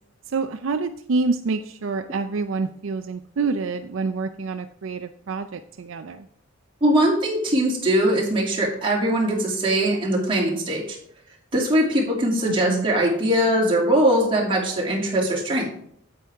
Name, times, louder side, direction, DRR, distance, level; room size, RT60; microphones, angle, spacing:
voice 1, 0.3-6.2 12.5-12.8, right 4 dB, 65° right, 8 dB, 0.5 m, -27 dB
voice 2, 6.8-11.0 11.5-15.7, right 1 dB, 25° right, -3 dB, 2.7 m, -21 dB
8.9 x 8.6 x 3.5 m, 0.67 s
head